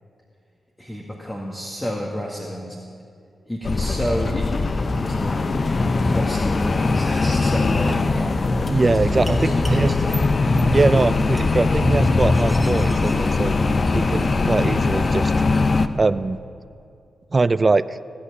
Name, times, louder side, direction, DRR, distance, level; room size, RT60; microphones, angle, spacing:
voice 1, 0.8-2.8 3.4-4.6 5.0-5.7 6.0-10.3, equal, 15° left, -2 dB, 1.9 m, -30 dB
sound 1, 3.6-15.9, left 3 dB, 50° left, 0.6 m, -21 dB
Domestic sounds home sounds, 6.9-15.1, equal, 10° right, 2.4 m, -40 dB
voice 2, 8.7-9.9 10.7-13.6 13.9-15.3 16.0-16.4 17.3-18.0, right 3 dB, 40° right, 15 dB, 0.4 m, -21 dB
16.5 x 5.8 x 9.7 m, 2.4 s
supercardioid pair, 40°, 0 cm